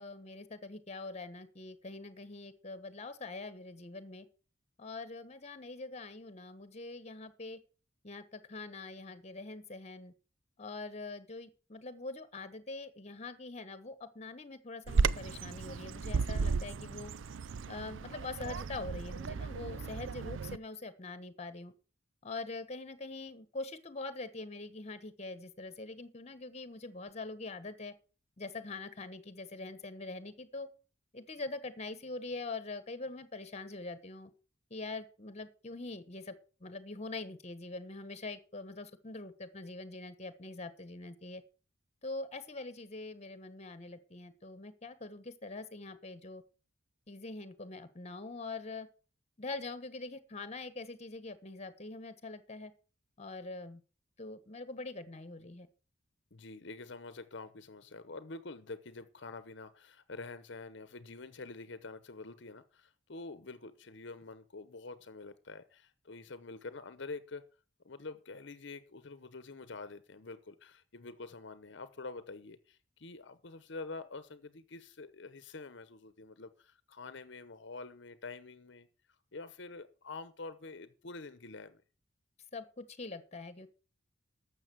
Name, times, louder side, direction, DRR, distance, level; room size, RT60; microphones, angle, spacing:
voice 1, 0.0-4.2 4.8-7.6 8.0-10.1 10.6-17.1 17.7-21.7 22.2-27.9 28.4-30.7 31.1-34.3 34.7-36.3 36.6-41.4 42.0-46.4 47.1-48.9 49.4-52.7 53.2-53.8 54.2-55.7 82.5-83.7, left 3 dB, 35° left, 1.2 m, -43 dB
Bird vocalization bird call bird song, 14.9-20.6, right 4 dB, 80° right, 0.5 m, -34 dB
voice 2, 56.3-67.4 67.8-78.9 79.3-81.8, left 3 dB, 65° left, 0.9 m, -47 dB
12.5 x 7.2 x 6.1 m
head